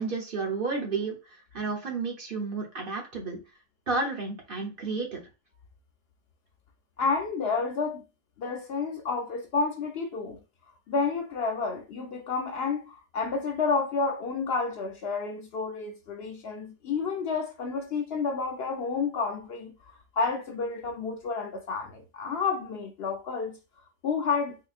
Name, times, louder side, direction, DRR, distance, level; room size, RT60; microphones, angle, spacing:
voice 1, 0.0-3.4 3.9-5.2, right 4 dB, 50° right, 1.0 m, -31 dB
voice 2, 7.0-8.0 8.4-10.4 10.9-23.6 24.0-24.6, left 4 dB, 60° left, 0.7 m, -30 dB
3.7 x 2.8 x 2.4 m
omnidirectional pair, 1.3 m